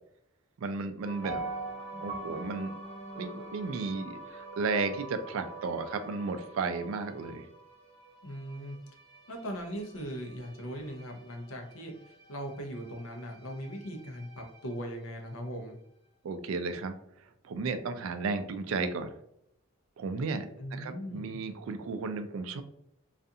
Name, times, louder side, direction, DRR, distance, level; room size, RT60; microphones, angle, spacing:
voice 1, 0.6-1.5 2.0-2.7 3.2-7.5 16.2-16.9 17.4-19.1 20.0-20.5 20.7-22.6, right 4 dB, 70° right, 9 dB, 0.3 m, -34 dB
Relaxing Short Music, 1.0-15.5, right 2 dB, 20° left, 0.8 m, -48 dB
Piano, 1.2-4.3 4.8-4.9, right 3 dB, 25° right, 0.6 m, -41 dB
voice 2, 8.2-8.8 9.3-11.9 12.3-15.8 20.6-21.4, equal, 75° left, 3 dB, 0.6 m, -39 dB
2.4 x 2.4 x 2.6 m, 0.75 s
head